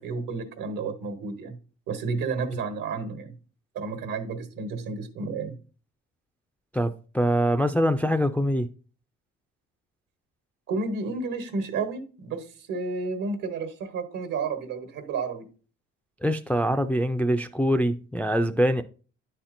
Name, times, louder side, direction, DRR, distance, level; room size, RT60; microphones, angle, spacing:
voice 1, 0.0-1.6 1.9-3.3 3.7-5.6 10.7-15.5, right 4 dB, 70° right, 1.3 m, -31 dB
voice 2, 6.7-8.7 16.2-18.8, equal, 5° left, 0.3 m, -24 dB
10.0 x 4.3 x 2.5 m
supercardioid pair, 80°, 33 cm